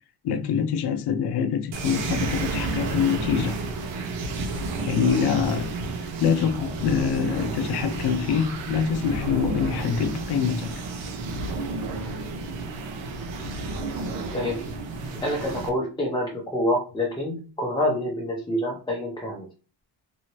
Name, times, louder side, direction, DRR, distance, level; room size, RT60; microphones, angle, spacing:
voice 1, 0.2-3.6 4.9-5.8 6.2-10.7, left 7 dB, 65° left, 0.5 m, -25 dB
sound 1, 1.7-15.7, right 3 dB, 90° right, 0.8 m, -31 dB
voice 2, 14.3-14.7 15.2-19.5, left 1 dB, 10° left, 0.6 m, -27 dB
2.8 x 2.7 x 2.9 m
cardioid pair, 145°, 43 cm